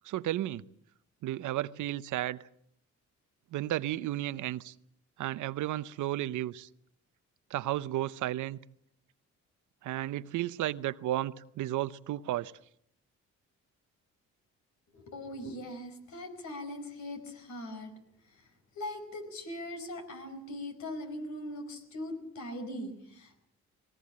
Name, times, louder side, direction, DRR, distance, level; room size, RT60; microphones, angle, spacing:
voice 1, 0.0-0.6 1.2-2.4 3.5-4.7 5.2-6.7 7.5-8.6 9.8-12.5, right 14 dB, 80° right, 0.8 m, -33 dB
voice 2, 14.9-17.9 18.3-23.4, left 1 dB, 70° left, 5.0 m, -41 dB
20.0 x 18.5 x 8.7 m
cardioid pair, 90°, 30 cm